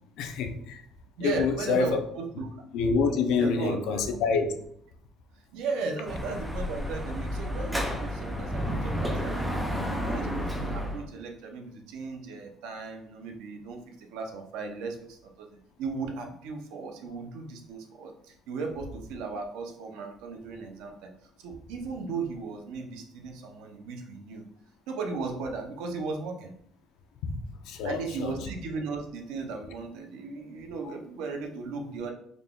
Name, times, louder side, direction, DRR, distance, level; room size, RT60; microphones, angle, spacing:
voice 1, 0.2-0.8 1.2-2.0 2.7-4.5 27.2-27.3 27.7-28.3, left 5 dB, 65° left, 0.5 m, -27 dB
voice 2, 1.2-2.5 3.4-4.1 5.5-9.7 10.0-21.1 21.4-24.5 24.9-26.5 27.8-32.1, right 4 dB, 80° right, 0.6 m, -36 dB
Dog / Motorcycle, 6.1-11.0, equal, 5° right, 0.4 m, -31 dB
3.8 x 2.3 x 3.6 m
cardioid pair, 180°, 0 cm